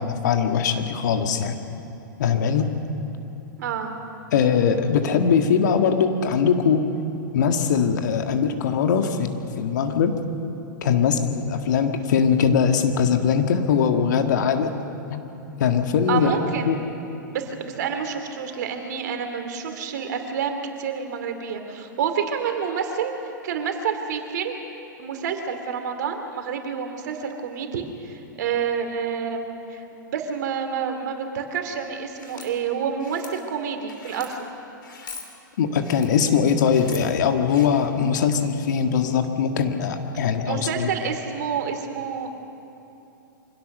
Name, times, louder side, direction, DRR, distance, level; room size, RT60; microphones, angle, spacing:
voice 1, 0.0-1.6 2.2-2.7 4.3-6.9 7.3-9.3 9.6-10.1 10.8-14.7 15.1-15.2 15.6-16.3 16.6-16.8 35.6-40.9, left 7 dB, 60° left, 6 dB, 1.7 m, -21 dB
voice 2, 3.6-3.9 16.1-16.7 17.3-24.6 25.0-34.4 40.4-42.3, right 6 dB, 60° right, 6 dB, 2.6 m, -28 dB
sound 1, 32.1-32.5 33.0-33.3 33.9-34.3 34.8-35.3 35.7-36.1 36.6-37.0 37.5-37.7, left 5 dB, 80° left, 3.0 m, -41 dB
24.5 x 17.0 x 6.7 m, 2.8 s
figure-of-eight pair, 105°, 11 cm